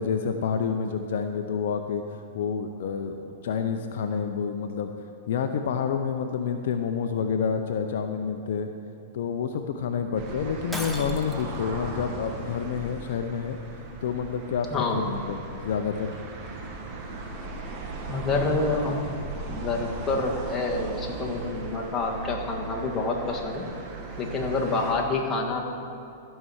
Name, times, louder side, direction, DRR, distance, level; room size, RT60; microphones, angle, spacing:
voice 1, 0.0-2.0 2.3-4.9 5.3-8.7 9.1-13.6 14.0-16.1, left 6 dB, 65° left, 6 dB, 0.6 m, -28 dB
sound 1, 10.2-24.9, right 3 dB, 35° right, 1.7 m, -38 dB
Shatter, 10.7-11.6, equal, ahead, 1.2 m, -35 dB
voice 2, 14.7-15.0 18.1-19.0 19.5-23.7 24.2-25.6, left 3 dB, 20° left, -1 dB, 1.7 m, -27 dB
14.5 x 5.6 x 6.3 m, 2.5 s
hypercardioid pair, 120°, 0 cm